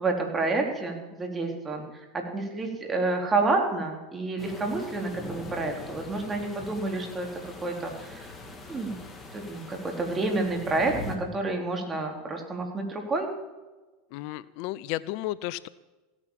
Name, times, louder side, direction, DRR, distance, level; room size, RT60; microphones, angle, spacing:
voice 1, 0.0-8.3 8.7-8.9 9.3-13.3, right 3 dB, 25° right, 2 dB, 3.9 m, -29 dB
sound 1, 4.4-11.2, left 3 dB, 20° left, 3.0 m, -42 dB
voice 2, 14.1-15.7, left 16 dB, 60° left, 19 dB, 0.5 m, -33 dB
16.5 x 9.9 x 7.3 m, 1.2 s
hypercardioid pair, 95°, 0 cm